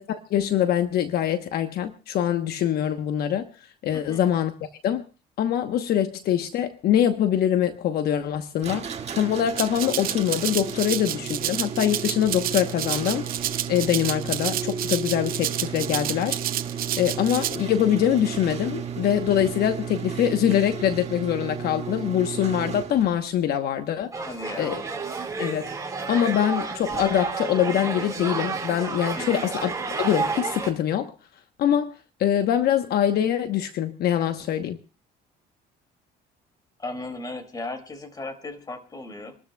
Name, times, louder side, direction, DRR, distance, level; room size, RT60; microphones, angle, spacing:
voice 1, 0.0-3.5 3.8-4.5 4.8-5.0 5.4-13.3 13.7-16.4 17.0-24.1 24.6-24.8 25.4-25.7 26.1-29.7 30.0-31.1 31.6-31.9 32.2-34.8, left 10 dB, 70° left, 1.0 m, -24 dB
voice 2, 3.9-4.3 24.2-24.8 29.1-29.5 36.8-39.4, left 2 dB, 25° left, 2.6 m, -36 dB
sound 1, 8.6-23.3, right 6 dB, 40° right, 2.0 m, -34 dB
Rattle (instrument), 9.6-17.6, right 12 dB, 60° right, 0.6 m, -30 dB
sound 2, 24.1-30.7, right 4 dB, 20° right, 4.3 m, -30 dB
28.0 x 13.0 x 2.3 m
cardioid pair, 110°, 17 cm